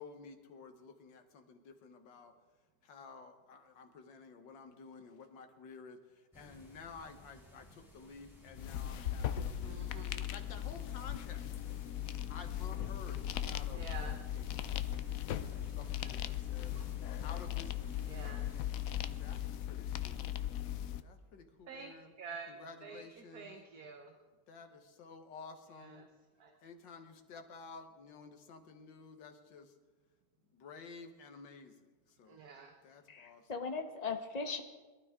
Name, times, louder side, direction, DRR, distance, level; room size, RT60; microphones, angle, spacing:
voice 1, 0.0-2.3 2.8-6.0 6.3-11.4 12.3-15.0 15.4-16.9 17.2-18.1 19.2-19.4 19.7-20.3 21.0-22.2 22.5-23.6 24.5-26.1 26.6-29.7 30.5-31.9 32.2-32.4 32.8-33.4, left 5 dB, 85° left, 7 dB, 1.9 m, -52 dB
Rain and thunder, 6.3-19.4, left 1 dB, ahead, 3.9 m, -56 dB
sound 1, 8.5-21.0, left 11 dB, 70° left, 0.9 m, -38 dB
voice 2, 9.6-10.2 13.7-14.2 15.8-15.9 16.7-16.8 18.1-18.5 21.7-21.9 22.2-24.1 25.7-26.1 26.4-26.5 32.3-32.7, right 5 dB, 60° right, 4 dB, 1.5 m, -48 dB
voice 3, 33.1-34.6, left 4 dB, 30° left, 6 dB, 0.9 m, -39 dB
22.5 x 12.0 x 3.7 m, 1.3 s
omnidirectional pair, 1.9 m